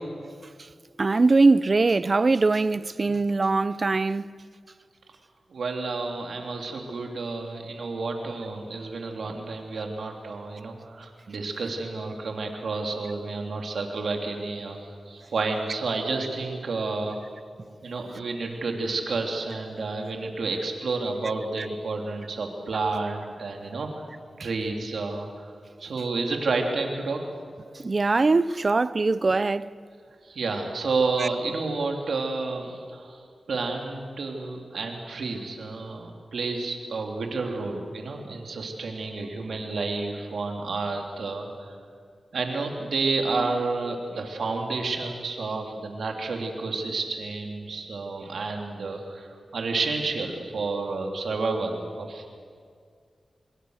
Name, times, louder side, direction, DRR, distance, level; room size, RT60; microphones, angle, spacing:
voice 1, 1.0-4.3 21.6-21.7 27.8-29.7 31.2-31.3, right 3 dB, 45° right, 0.6 m, -22 dB
voice 2, 5.5-17.2 17.8-23.9 24.4-25.5 25.8-27.2 30.2-33.2 33.5-41.7 42.3-52.4, right 3 dB, 80° right, 3.1 m, -30 dB
26.5 x 22.0 x 6.6 m
cardioid pair, 55°, 0 cm